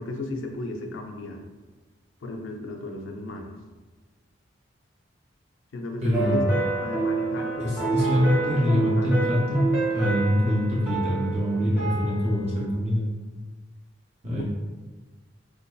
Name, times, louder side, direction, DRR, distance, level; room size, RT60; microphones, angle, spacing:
voice 1, 0.0-1.4 2.2-3.5 5.7-6.4 6.8-9.2 14.3-14.4, left 2 dB, 80° left, 3 dB, 0.4 m, -35 dB
voice 2, 6.0-6.5 7.6-9.7 9.9-13.1 14.2-14.4, equal, 35° right, -5 dB, 0.6 m, -24 dB
sound 1, 6.1-12.7, right 3 dB, 5° right, 0.9 m, -28 dB
4.4 x 2.6 x 2.3 m, 1.3 s
head